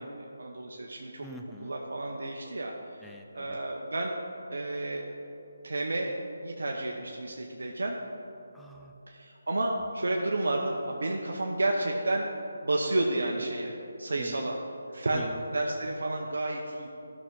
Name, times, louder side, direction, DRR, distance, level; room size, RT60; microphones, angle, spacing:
voice 1, 0.0-1.3 1.6-2.7 3.3-4.2 4.5-5.2 5.6-6.2 6.4-8.0 9.1-12.3 12.6-14.6 14.9-16.9, right 2 dB, 75° right, 0 dB, 0.8 m, -31 dB
voice 2, 1.2-1.7 3.0-3.6 8.5-8.9 14.1-14.5 15.1-15.4, right 1 dB, ahead, 0 dB, 0.5 m, -45 dB
13.5 x 6.0 x 3.7 m, 2.8 s
figure-of-eight pair, 155°, 0 cm